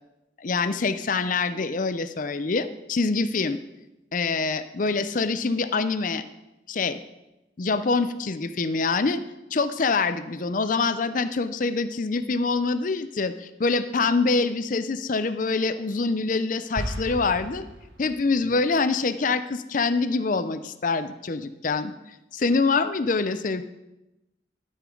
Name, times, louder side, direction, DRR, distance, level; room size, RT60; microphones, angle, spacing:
voice 1, 0.4-3.6 4.1-6.2 6.7-7.0 7.6-9.2 9.5-17.6 18.0-21.9 22.3-23.6, left 4 dB, 45° left, 12 dB, 0.5 m, -25 dB
sound 1, 16.7-18.4, equal, 80° right, 1.4 m, -35 dB
12.5 x 8.6 x 3.9 m, 0.97 s
head